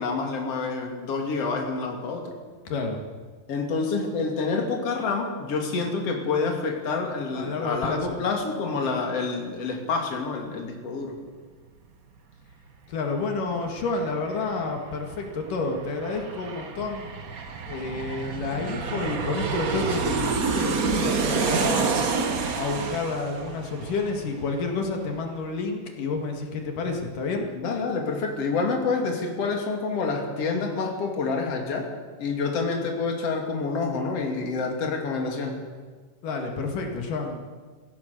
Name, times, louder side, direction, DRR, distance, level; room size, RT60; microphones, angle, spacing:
voice 1, 0.0-2.3 3.5-11.2 27.6-31.9 32.2-35.6, left 4 dB, 50° left, 2 dB, 3.6 m, -28 dB
voice 2, 2.7-3.0 7.3-8.2 12.9-17.1 17.7-22.0 22.5-27.5 36.2-37.4, left 3 dB, 80° left, 2 dB, 3.7 m, -30 dB
Aircraft, 13.1-13.2 13.5-24.8 25.1-25.2, right 5 dB, 55° right, 0.9 m, -28 dB
26.5 x 16.5 x 6.8 m, 1.5 s
omnidirectional pair, 3.7 m